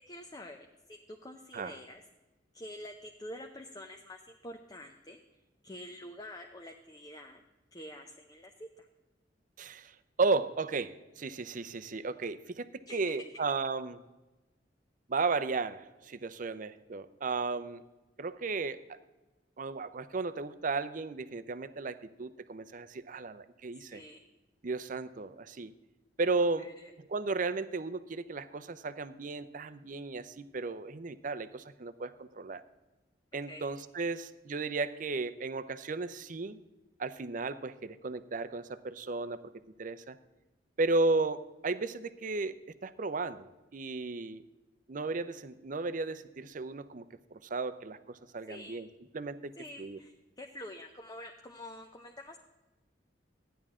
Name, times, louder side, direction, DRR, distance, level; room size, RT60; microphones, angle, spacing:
voice 1, 0.1-2.0 2.5-5.2 5.6-7.4 7.7-8.9 12.9-13.4 23.9-24.3 26.6-26.9 33.5-33.7 48.5-48.8 49.6-52.4, left 1 dB, 20° left, 3 dB, 0.7 m, -47 dB
voice 2, 9.6-9.9 10.2-14.0 15.1-17.8 18.2-19.0 19.6-24.0 24.6-25.7 26.2-26.7 27.1-32.6 33.3-36.6 37.0-39.4 39.8-40.2 40.8-42.5 42.8-44.4 44.9-47.0 47.3-48.9 49.1-49.5 49.8-50.0, right 3 dB, 45° right, 12 dB, 0.6 m, -34 dB
14.5 x 10.0 x 3.7 m, 1.1 s
head